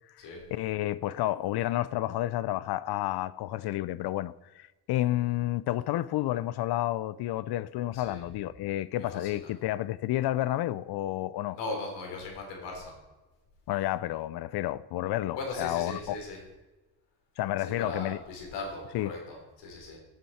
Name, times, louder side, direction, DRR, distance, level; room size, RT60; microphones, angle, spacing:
voice 1, 0.2-11.6 13.7-16.2 17.4-18.2 18.9-19.1, left 14 dB, 70° left, 0.5 m, -30 dB
voice 2, 9.1-9.5 11.5-13.0 15.3-16.4 17.6-20.0, left 3 dB, 90° left, 3.7 m, -38 dB
15.5 x 7.8 x 4.2 m
cardioid pair, 110°, 41 cm